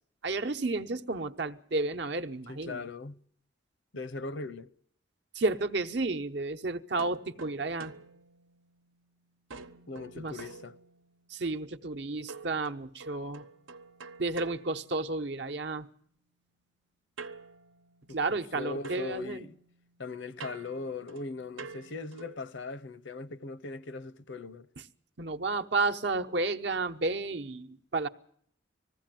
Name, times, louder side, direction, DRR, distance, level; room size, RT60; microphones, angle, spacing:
voice 1, 0.2-2.8 5.3-7.9 10.1-10.4 11.3-13.4 14.2-15.9 18.1-19.4 25.2-28.1, right 3 dB, 60° right, 0.9 m, -32 dB
voice 2, 2.5-3.2 3.9-4.7 9.9-10.7 18.1-19.5 20.0-24.7, left 3 dB, 70° left, 0.8 m, -39 dB
sound 1, 7.0-9.1 9.5-11.3 12.3-15.5 17.2-18.5 18.8-22.5, right 4 dB, 85° right, 1.1 m, -49 dB
20.0 x 15.5 x 9.1 m
head